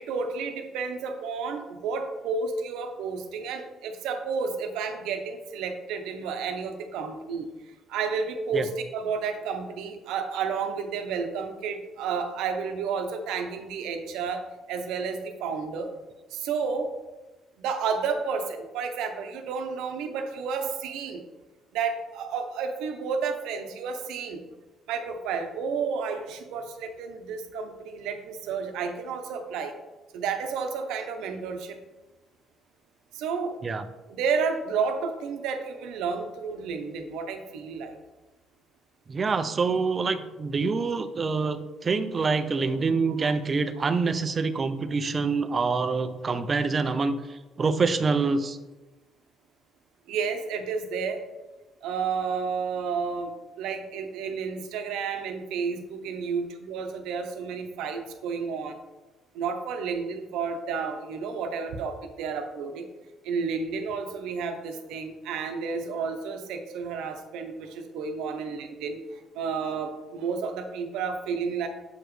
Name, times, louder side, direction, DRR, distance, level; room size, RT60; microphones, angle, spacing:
voice 1, 0.0-7.5 7.9-14.4 14.7-15.9 16.3-16.9 17.6-21.2 21.7-24.4 24.9-29.7 30.1-31.8 33.1-33.6 34.1-38.0 40.8-40.9 43.2-43.3 43.8-43.9 45.5-45.7 50.1-51.2 51.8-58.8 59.3-62.9 63.2-69.0 69.3-71.7, right 5 dB, 90° right, 6 dB, 0.8 m, -31 dB
voice 2, 39.1-48.6, right 4 dB, 30° right, 11 dB, 0.5 m, -26 dB
7.4 x 5.0 x 3.2 m, 1.1 s
cardioid pair, 130°, 0 cm